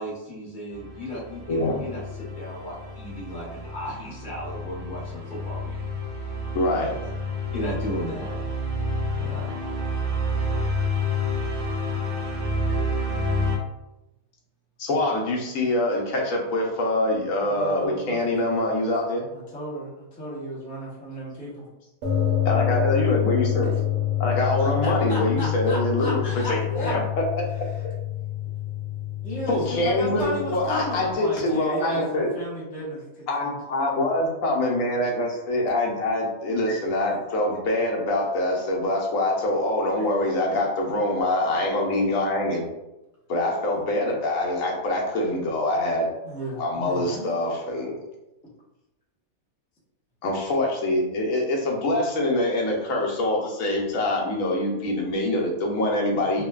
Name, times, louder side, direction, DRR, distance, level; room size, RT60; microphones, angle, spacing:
voice 1, 0.0-5.7 6.7-6.9 7.5-8.4 9.2-9.6 26.2-26.4 31.5-32.0 36.6-36.7, equal, 35° left, -6 dB, 0.9 m, -35 dB
Orchestra climb mild horror, 0.7-13.6, left 1 dB, 70° right, 0.8 m, -29 dB
voice 2, 6.5-6.9 14.8-19.3 22.4-23.7 24.2-26.2 26.5-27.0 27.4-27.7 29.5-32.3 33.3-42.6 43.3-46.1 46.6-48.0 50.2-56.4, left 1 dB, 70° left, -1 dB, 1.0 m, -24 dB
voice 3, 17.4-18.6 19.3-21.7 24.6-26.9 29.2-33.6 40.0-40.1 46.2-47.5 56.4-56.5, equal, 15° left, -8 dB, 0.3 m, -34 dB
sound 1, 22.0-31.1, left 12 dB, 85° right, 1.1 m, -27 dB
3.1 x 2.1 x 2.2 m, 0.94 s
omnidirectional pair, 1.6 m